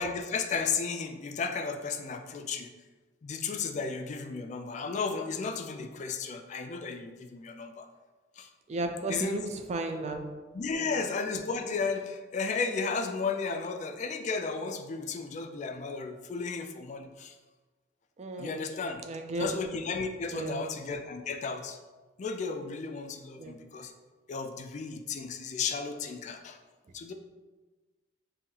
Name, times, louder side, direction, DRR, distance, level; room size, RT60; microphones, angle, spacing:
voice 1, 0.0-2.7 3.2-7.9 8.4-8.5 9.1-9.4 10.5-17.4 18.4-19.0 19.4-21.8 22.2-23.9 24.3-26.6 26.9-27.1, left 4 dB, 40° left, 7 dB, 0.3 m, -34 dB
voice 2, 8.7-10.4 10.7-11.0 18.2-18.7 19.0-19.5 20.3-20.7 23.4-23.6, right 2 dB, 35° right, 5 dB, 0.4 m, -35 dB
5.4 x 2.7 x 2.7 m, 1.3 s
head